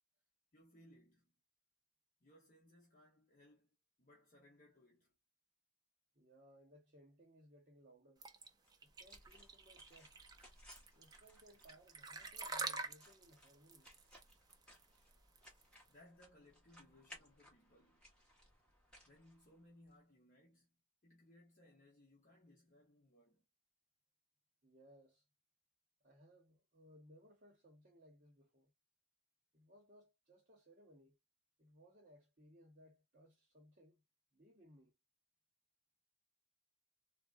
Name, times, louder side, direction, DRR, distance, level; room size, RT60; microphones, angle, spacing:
voice 1, 0.5-1.3 2.2-5.1 15.4-15.5 15.9-18.1 19.1-20.8 21.0-23.4, left 1 dB, 40° left, 0.9 m, -66 dB
voice 2, 6.1-8.3 8.8-10.2 10.9-13.9 24.6-25.2 26.0-28.7 29.5-31.2 31.6-34.0 34.3-34.9, equal, 40° right, 0.9 m, -65 dB
sound 1, 8.2-15.9, right 4 dB, 20° right, 0.4 m, -47 dB
sound 2, 8.6-20.0, equal, 5° left, 1.2 m, -64 dB
3.6 x 2.1 x 2.4 m
head